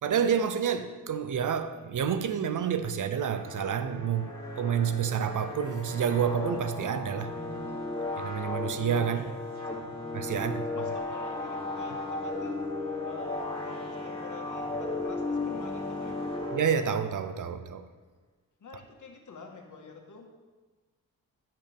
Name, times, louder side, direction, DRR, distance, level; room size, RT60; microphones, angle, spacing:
voice 1, 0.0-4.3 4.6-7.3 8.2-9.2 10.1-10.6 16.5-17.8, right 7 dB, 60° right, 0.7 m, -29 dB
sound 1, 3.2-17.3, left 2 dB, 15° left, 2.4 m, -35 dB
voice 2, 9.1-9.4 10.3-12.6 13.0-16.3 18.6-20.3, left 4 dB, 55° left, 1.6 m, -47 dB
15.0 x 5.8 x 3.5 m
cardioid pair, 70°, 36 cm